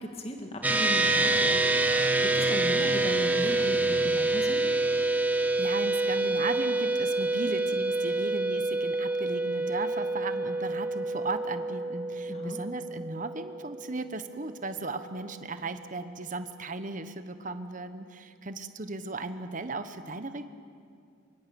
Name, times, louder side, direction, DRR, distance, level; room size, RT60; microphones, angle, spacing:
voice 1, 0.0-4.8 12.3-12.6, equal, 30° left, 3 dB, 1.9 m, -37 dB
sound 1, 0.6-14.2, right 2 dB, 10° right, 1.1 m, -27 dB
voice 2, 5.3-20.5, right 3 dB, 35° right, 10 dB, 1.1 m, -36 dB
24.5 x 23.0 x 7.0 m, 2.4 s
head